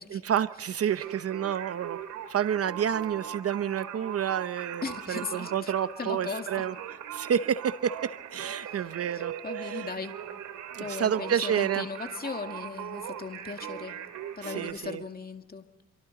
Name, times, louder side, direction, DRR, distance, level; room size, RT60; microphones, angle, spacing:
voice 1, 0.1-2.0 2.3-6.7 7.1-9.8 10.7-11.9 14.4-15.0, right 9 dB, 50° right, 13 dB, 0.8 m, -29 dB
Singing, 0.9-14.7, right 10 dB, 80° right, 2.5 m, -40 dB
voice 2, 4.8-5.7 6.0-6.7 8.7-8.8 9.4-10.2 10.8-14.0 14.4-15.7, left 4 dB, 30° left, 6 dB, 2.1 m, -37 dB
27.5 x 24.0 x 4.0 m, 0.95 s
cardioid pair, 90°, 30 cm